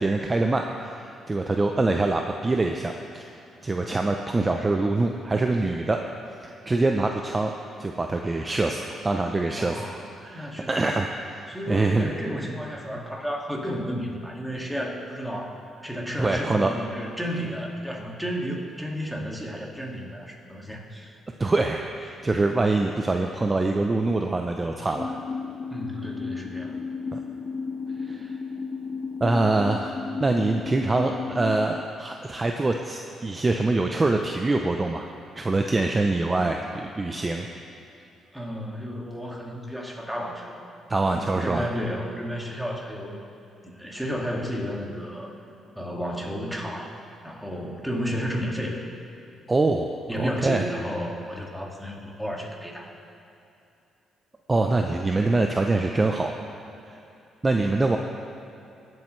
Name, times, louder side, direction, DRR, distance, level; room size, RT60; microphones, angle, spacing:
voice 1, 0.0-3.3 3.6-6.0 6.4-7.5 7.8-9.9 10.2-11.4 11.7-12.1 16.2-16.7 21.4-25.2 27.1-27.2 28.0-28.3 29.2-29.9 30.2-35.1 35.3-37.5 40.9-41.7 49.5-49.9 50.2-50.6 54.5-56.3 56.9-57.0 57.4-58.0, right 2 dB, 25° right, 3 dB, 0.6 m, -24 dB
voice 2, 9.5-11.1 11.5-21.2 25.7-26.7 38.3-40.6 41.1-43.2 43.6-45.3 45.8-46.9 47.2-48.8 50.1-52.9, equal, ahead, -2 dB, 2.0 m, -32 dB
sound 1, 25.0-31.8, left 5 dB, 30° left, 0.4 m, -34 dB
20.0 x 7.7 x 3.2 m, 2.8 s
cardioid pair, 90°, 0 cm